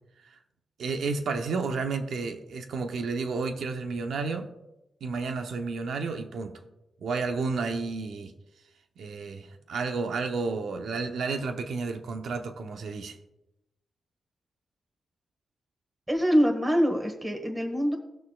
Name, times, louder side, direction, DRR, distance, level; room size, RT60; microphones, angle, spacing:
voice 1, 0.8-4.5 5.0-6.6 7.0-8.3 9.0-13.2, right 4 dB, 80° right, 6 dB, 0.9 m, -31 dB
voice 2, 16.1-18.0, equal, 15° right, 2 dB, 1.5 m, -24 dB
18.0 x 6.2 x 2.4 m, 0.92 s
cardioid pair, 85°, 0 cm